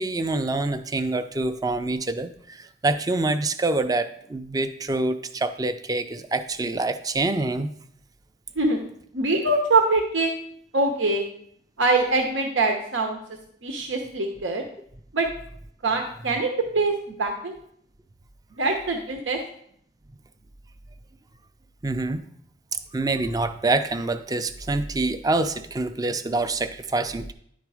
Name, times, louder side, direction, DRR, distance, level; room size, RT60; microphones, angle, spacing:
voice 1, 0.0-7.7 21.8-22.2 22.9-27.3, right 2 dB, 20° right, 10 dB, 0.4 m, -26 dB
voice 2, 9.1-10.3 10.7-11.2 11.8-13.2 13.6-14.6 15.1-15.3 15.8-17.5 18.6-19.4, right 3 dB, 90° right, 3 dB, 0.9 m, -23 dB
10.5 x 4.0 x 4.8 m, 0.67 s
head